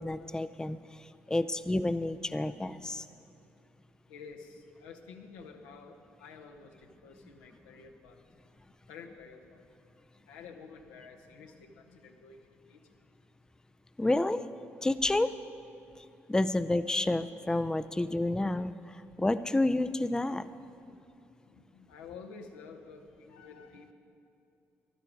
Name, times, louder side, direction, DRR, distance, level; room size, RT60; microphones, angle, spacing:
voice 1, 0.0-3.0 14.0-14.4 14.8-15.3 16.0-20.5, left 2 dB, 10° left, 12 dB, 0.5 m, -30 dB
voice 2, 4.1-8.5 8.9-9.6 10.0-13.0 20.6-21.1 21.4-23.9, left 5 dB, 75° left, 4 dB, 1.0 m, -51 dB
14.5 x 12.0 x 5.0 m, 2.8 s
hypercardioid pair, 45°, 7 cm